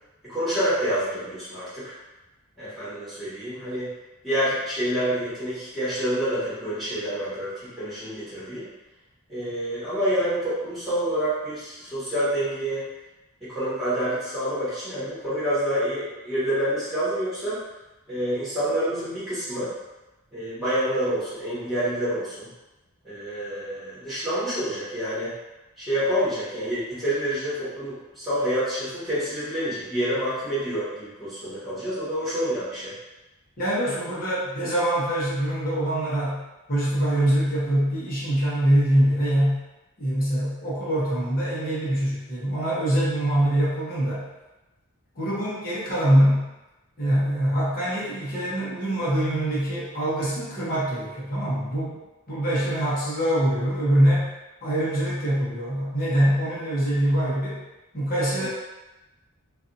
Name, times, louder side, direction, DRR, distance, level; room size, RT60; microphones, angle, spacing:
voice 1, 0.2-1.9 2.6-3.9 4.2-8.6 9.3-12.8 13.4-17.6 18.1-19.7 20.3-22.5 23.0-25.3 25.8-32.9 58.4-58.5, equal, ahead, -13 dB, 1.3 m, -27 dB
voice 2, 33.6-36.4 36.7-39.6 40.0-44.3 45.2-46.5 47.0-52.0 52.3-54.3 54.6-57.6 57.9-58.5, right 1 dB, 40° left, -8 dB, 1.0 m, -24 dB
2.6 x 2.5 x 2.6 m, 1.0 s
head